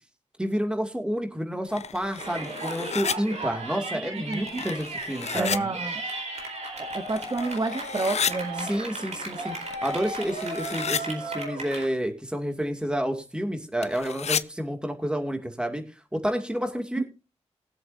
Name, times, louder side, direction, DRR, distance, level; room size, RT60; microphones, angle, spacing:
voice 1, 0.4-5.7 8.6-15.8 16.1-17.0, equal, 10° right, 2.4 m, -29 dB
sound 1, 1.7-3.2 4.3-5.6 6.4-6.5 6.9-8.3 9.5-11.0 13.8-14.4, left 7 dB, 70° left, 0.5 m, -32 dB
Yell, 2.2-11.9, right 2 dB, 75° right, 4.1 m, -35 dB
voice 2, 3.9-4.6 5.3-6.0 6.8-8.7 17.0-17.1, right 3 dB, 35° right, 1.0 m, -30 dB
20.0 x 7.7 x 2.7 m
cardioid pair, 40°, 12 cm